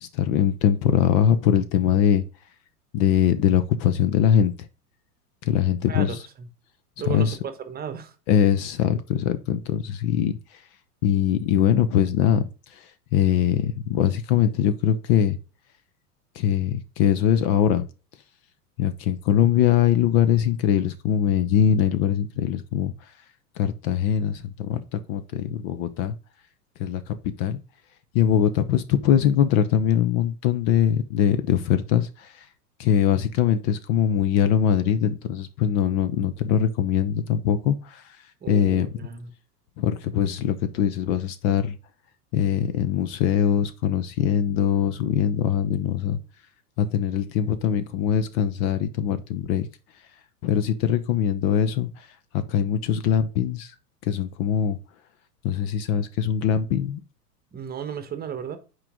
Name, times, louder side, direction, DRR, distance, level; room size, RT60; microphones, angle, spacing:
voice 1, 0.0-2.2 2.9-4.7 5.4-6.2 7.1-7.4 8.3-10.3 11.0-12.5 12.7-12.9 13.1-15.4 16.4-17.8 18.8-22.9 23.6-26.1 26.8-27.6 28.1-32.4 32.8-38.0 38.5-38.9 39.8-41.8 42.3-46.2 46.8-49.7 50.4-52.1 52.3-53.7 54.0-54.8 55.4-57.0, left 9 dB, 40° left, 0.8 m, -22 dB
voice 2, 5.9-6.5 7.0-7.4 7.7-8.1 38.4-39.3 57.5-58.6, right 7 dB, 20° right, 1.2 m, -34 dB
8.7 x 4.8 x 3.7 m
figure-of-eight pair, 95°, 47 cm